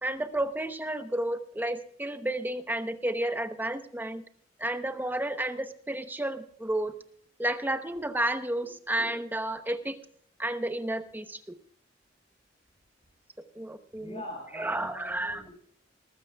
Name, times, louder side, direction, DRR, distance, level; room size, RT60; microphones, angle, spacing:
voice 1, 0.0-4.2 4.6-6.9 7.4-10.0 10.4-11.6 13.5-14.2 14.5-15.5, right 1 dB, 10° right, 9 dB, 0.9 m, -31 dB
voice 2, 14.0-15.5, left 1 dB, 35° left, -2 dB, 6.6 m, -43 dB
20.5 x 13.5 x 2.3 m, 0.62 s
head